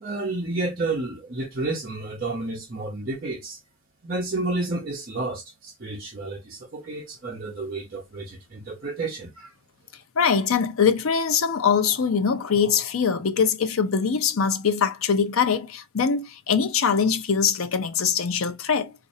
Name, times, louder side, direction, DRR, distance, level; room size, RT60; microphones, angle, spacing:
voice 1, 0.0-3.6 4.0-9.5, right 2 dB, 45° right, 0.7 m, -31 dB
voice 2, 10.2-18.9, left 6 dB, 85° left, 0.6 m, -22 dB
4.0 x 2.5 x 2.6 m
head